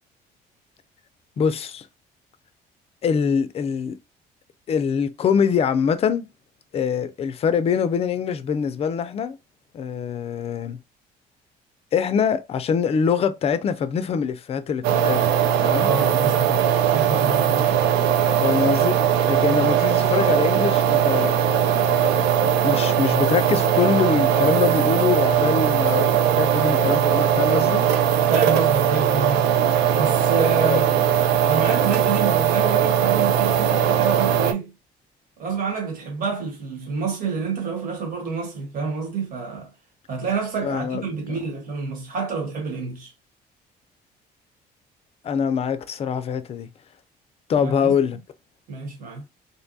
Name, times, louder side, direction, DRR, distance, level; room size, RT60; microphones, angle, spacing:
voice 1, 1.4-1.9 3.0-4.0 4.7-6.3 6.7-9.4 9.7-10.8 11.9-15.3 15.6-15.9 18.4-19.0 19.3-21.4 21.9-27.8 30.6-30.8 40.6-41.4 45.2-46.7 47.5-48.2, left 7 dB, 35° left, 0.4 m, -24 dB
sound 1, 14.8-34.5, right 9 dB, 80° right, 0.4 m, -20 dB
voice 2, 15.8-18.2 28.3-29.5 30.0-31.0 31.4-34.7 35.4-39.7 40.1-43.1 47.6-48.0 48.7-49.2, right 5 dB, 55° right, 1.3 m, -28 dB
2.7 x 2.2 x 2.6 m
cardioid pair, 110°, 17 cm